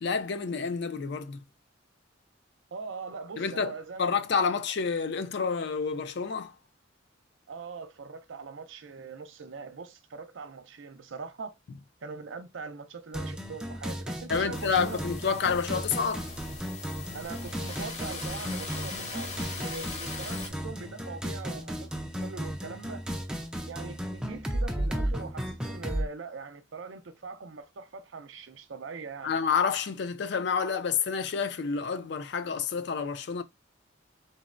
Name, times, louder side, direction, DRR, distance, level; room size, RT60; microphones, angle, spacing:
voice 1, 0.0-1.4 3.4-3.7 4.0-6.5 14.3-16.3 29.2-33.4, left 6 dB, 60° left, 0.4 m, -29 dB
voice 2, 2.7-4.1 4.5-4.6 7.5-11.5 12.0-15.0 17.1-23.0 23.7-29.3, right 4 dB, 75° right, 0.5 m, -42 dB
sound 1, 13.1-26.1, equal, 5° right, 0.4 m, -35 dB
sound 2, 14.5-20.5, left 3 dB, 35° left, 0.7 m, -41 dB
3.9 x 2.1 x 2.4 m
head